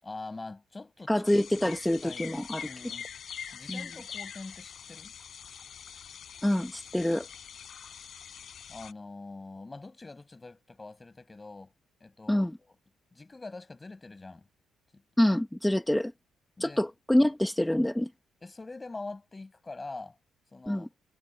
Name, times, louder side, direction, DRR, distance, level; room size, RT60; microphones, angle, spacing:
voice 1, 0.0-1.7 2.0-2.3 2.6-3.1 3.5-5.1 8.7-11.7 12.0-12.8 13.1-14.5 14.9-15.0 16.6-16.8 18.4-20.2 20.5-20.9, left 3 dB, 20° left, 6.4 m, -44 dB
voice 2, 1.1-2.7 3.7-3.8 6.4-7.3 12.3-12.5 15.2-16.1 16.6-18.1 20.7-20.9, left 1 dB, 5° left, 1.5 m, -26 dB
sound 1, 1.2-8.9, left 8 dB, 55° left, 7.6 m, -44 dB
cardioid pair, 90°, 0 cm